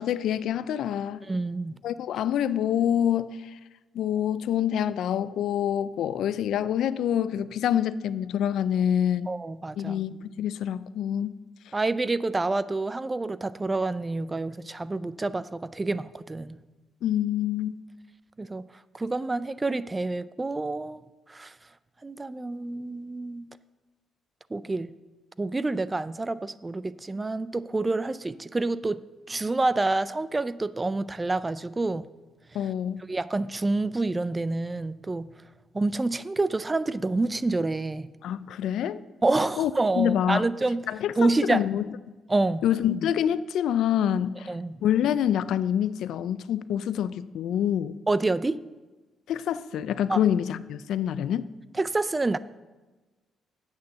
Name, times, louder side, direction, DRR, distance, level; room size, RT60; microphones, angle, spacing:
voice 1, 0.0-1.3 1.8-3.6 3.9-9.3 9.8-11.4 17.0-17.8 32.5-33.0 38.2-39.0 39.6-39.7 40.0-40.4 40.9-41.8 42.6-44.5 44.8-48.0 49.3-51.5, left 10 dB, 75° left, 0.4 m, -26 dB
voice 2, 1.3-1.8 9.3-10.0 11.7-16.6 18.4-18.7 18.9-21.5 22.0-23.4 24.5-24.9 25.4-29.0 29.3-32.1 33.1-35.3 35.7-38.1 39.2-40.8 41.2-41.6 42.3-42.6 44.5-44.8 48.1-48.6 50.1-50.2 51.8-52.4, right 2 dB, 20° right, 0.4 m, -28 dB
8.1 x 6.7 x 6.7 m
cardioid pair, 90°, 0 cm